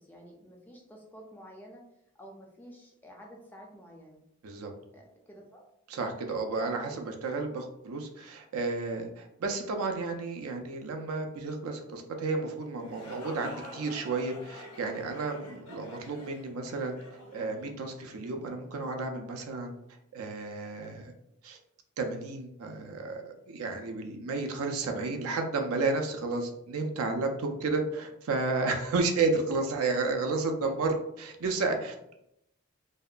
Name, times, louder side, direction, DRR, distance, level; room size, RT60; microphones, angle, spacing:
voice 1, 0.0-1.9 2.2-4.2 4.9-5.6 6.5-6.6, equal, 10° left, -1 dB, 0.3 m, -50 dB
voice 2, 5.9-17.0 17.3-19.7 20.1-21.1 21.4-21.6 22.0-32.1, right 3 dB, 75° right, 4 dB, 0.4 m, -32 dB
sound 1, 12.6-18.3, left 1 dB, 85° left, 0.6 m, -47 dB
2.7 x 2.2 x 2.4 m, 0.80 s
head